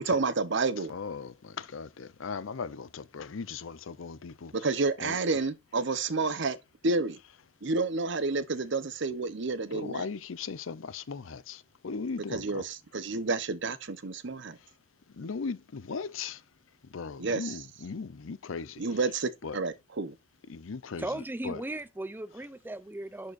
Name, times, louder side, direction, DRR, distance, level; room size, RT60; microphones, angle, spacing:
voice 1, 0.0-0.9 4.5-6.6 6.8-7.2 7.6-10.0 12.3-14.6 17.2-17.5 18.8-20.2, right 3 dB, 65° right, 0.8 m, -30 dB
voice 2, 0.9-4.7 5.0-5.4 9.7-12.7 14.6-14.7 15.1-16.4 16.8-19.0 19.4-19.6 20.5-21.6, left 5 dB, 80° left, 0.6 m, -38 dB
voice 3, 21.0-23.3, right 1 dB, 10° right, 0.5 m, -37 dB
11.0 x 4.5 x 2.5 m
head